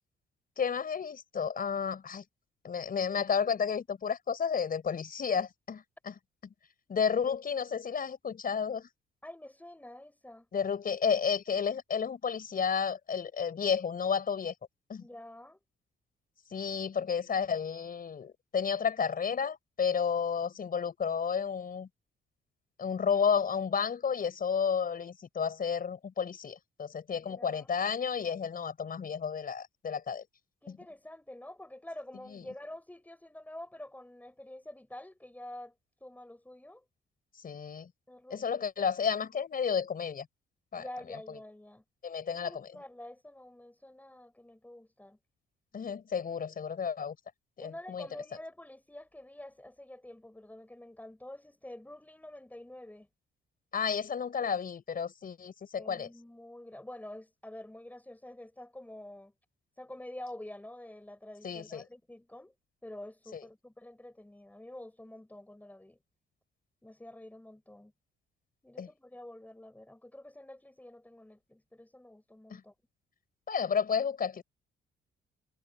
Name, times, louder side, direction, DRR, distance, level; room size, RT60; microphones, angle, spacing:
voice 1, 0.6-2.2 2.6-6.1 6.4-6.5 6.9-8.9 10.5-14.5 14.9-15.0 16.5-21.9 22.8-30.2 30.7-30.8 32.3-32.4 37.4-37.9 38.3-40.3 40.7-40.9 42.0-42.7 45.7-47.2 47.6-48.1 53.7-56.1 61.4-61.8 63.3-63.4 68.8-68.9 72.5-72.6 73.5-74.4, left 6 dB, 45° left, 5.7 m, -32 dB
voice 2, 9.2-10.5 15.0-15.6 27.1-27.7 30.6-35.7 36.0-36.8 38.1-38.6 40.7-41.8 42.3-45.2 47.6-53.1 55.8-59.3 59.8-62.5 62.8-66.0 66.8-67.9 68.6-72.7, left 1 dB, 10° left, 6.2 m, -48 dB
cardioid pair, 90°, 20 cm